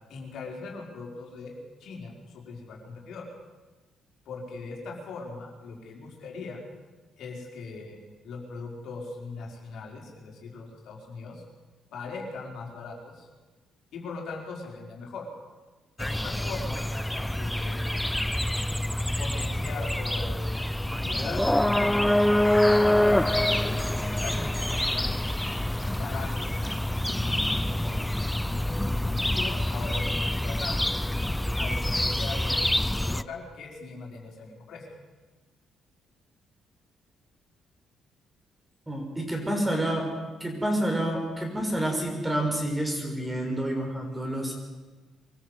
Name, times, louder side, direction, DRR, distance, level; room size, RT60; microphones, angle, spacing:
voice 1, 0.1-3.3 4.2-6.6 7.2-8.0 8.2-11.4 11.9-13.3 13.9-15.3 16.0-16.9 17.3-17.8 19.2-20.5 20.8-22.4 22.9-25.1 25.9-26.5 27.0-27.9 28.3-30.8 31.6-34.9, left 4 dB, 75° left, -1 dB, 5.0 m, -40 dB
sound 1, 16.0-33.2, left 1 dB, 5° left, 0.6 m, -26 dB
voice 2, 38.9-40.1 40.4-44.5, right 1 dB, 15° right, 2 dB, 6.0 m, -28 dB
24.0 x 14.0 x 8.3 m, 1.3 s
cardioid pair, 90°, 0 cm